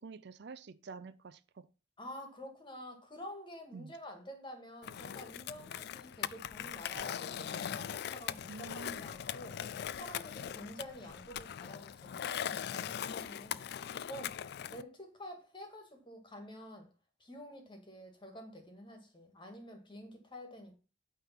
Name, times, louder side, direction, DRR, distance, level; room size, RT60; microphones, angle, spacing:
voice 1, 0.0-1.7 3.7-3.9 8.5-9.1, right 4 dB, 60° right, 0.5 m, -48 dB
voice 2, 2.0-9.6 9.9-13.6 14.1-14.4 14.7-16.9 17.2-20.7, equal, 25° left, 1.9 m, -49 dB
Skateboard, 4.8-14.8, left 9 dB, 60° left, 0.3 m, -40 dB
8.9 x 3.6 x 5.8 m
head